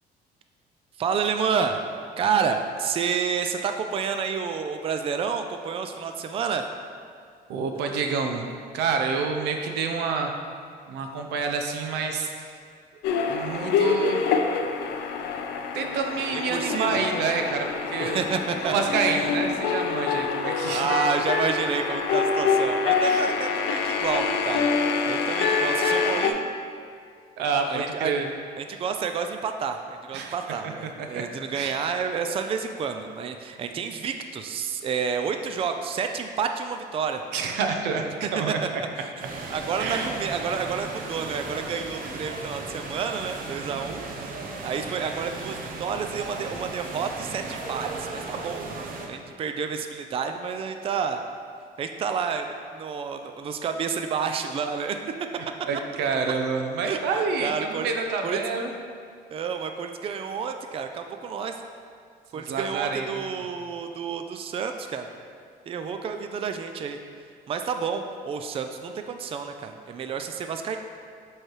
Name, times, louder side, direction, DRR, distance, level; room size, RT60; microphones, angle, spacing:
voice 1, 1.0-1.8 2.2-6.7 16.3-17.1 18.0-19.3 20.7-26.4 27.7-28.2 28.6-37.2 38.2-38.3 38.6-38.7 39.0-39.1 39.5-44.1 44.6-48.6 49.1-51.2 51.8-55.0 56.8-57.0 57.4-57.9 58.2-58.4 59.3-61.5 62.3-65.1 65.7-67.0 67.5-70.8, right 6 dB, 35° right, 6 dB, 0.4 m, -29 dB
voice 2, 7.5-8.4 8.7-10.3 10.9-12.3 13.2-14.2 15.7-18.2 18.6-20.9 23.0-23.3 27.4-28.3 30.1-30.4 30.6-30.7 31.0-31.2 31.5-31.8 37.3-38.8 39.8-40.1 55.7-58.7 62.3-63.5, right 5 dB, 90° right, 4 dB, 0.7 m, -28 dB
sound 1, 13.0-26.3, left 5 dB, 90° left, 0.5 m, -26 dB
sound 2, 39.2-49.1, right 3 dB, 55° right, 0.8 m, -36 dB
7.2 x 3.3 x 4.5 m, 2.2 s
cardioid pair, 110°, 17 cm